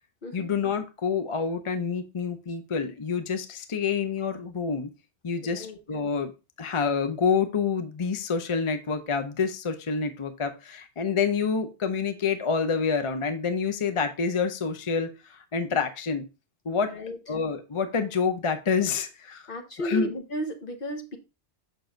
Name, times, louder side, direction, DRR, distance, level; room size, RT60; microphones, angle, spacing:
voice 1, 0.3-4.9 5.2-6.3 6.6-16.3 16.7-16.9 17.3-19.4 19.8-20.1, left 5 dB, 35° left, 8 dB, 0.5 m, -27 dB
voice 2, 5.4-5.8 16.8-17.2 19.5-21.2, left 1 dB, 55° left, 6 dB, 1.2 m, -34 dB
6.9 x 6.1 x 2.5 m, 0.28 s
omnidirectional pair, 1.1 m